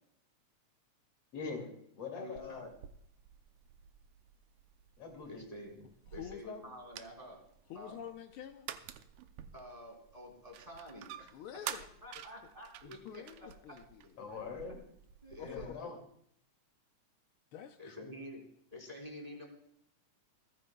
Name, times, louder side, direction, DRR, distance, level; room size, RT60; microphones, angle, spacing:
voice 1, 1.3-2.7 5.0-5.9 14.2-14.8 15.4-16.0, left 5 dB, 55° left, 3 dB, 3.4 m, -43 dB
voice 2, 2.2-2.7 5.3-5.8 6.1-7.4 7.7-8.0 9.5-11.3 12.0-13.5 14.0-14.4 14.7-14.8 15.2-15.8 17.8-18.4 18.7-19.5, equal, 10° right, -1 dB, 3.4 m, -49 dB
sound 1, 2.4-15.7, right 10 dB, 85° right, 2.1 m, -50 dB
voice 3, 6.1-6.7 7.7-8.7 11.3-12.2 12.8-14.0 15.4-15.8 17.5-18.1, left 9 dB, 80° left, 6 dB, 1.2 m, -48 dB
27.5 x 10.5 x 2.3 m, 0.72 s
omnidirectional pair, 3.5 m